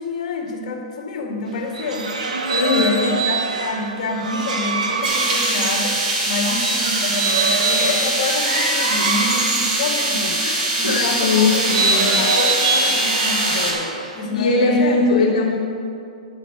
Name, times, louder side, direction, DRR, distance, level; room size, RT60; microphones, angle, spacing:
voice 1, 0.0-2.1 2.7-11.9 12.1-13.9 14.2-15.0, left 3 dB, 60° left, 1 dB, 1.8 m, -27 dB
sound 1, 1.5-10.6 11.2-14.2, right 4 dB, 75° right, 1.1 m, -24 dB
voice 2, 2.5-3.1 10.4-12.3 14.3-15.6, left 3 dB, 80° left, -3 dB, 1.4 m, -20 dB
sound 2, 5.0-13.7, right 1 dB, 30° right, 2.3 m, -22 dB
11.0 x 4.0 x 7.6 m, 2.5 s
hypercardioid pair, 115°, 4 cm